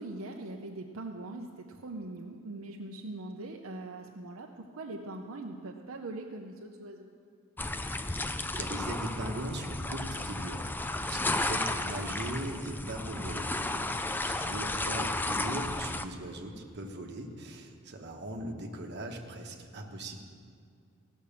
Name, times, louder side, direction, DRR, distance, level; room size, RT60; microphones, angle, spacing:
voice 1, 0.0-7.1 13.6-14.0, right 2 dB, 80° right, 2 dB, 0.7 m, -42 dB
sound 1, 7.6-16.0, left 2 dB, 10° left, 0.4 m, -33 dB
voice 2, 8.6-10.7 11.0-20.2, right 1 dB, 55° right, 2 dB, 1.3 m, -39 dB
16.0 x 6.3 x 7.0 m, 2.3 s
head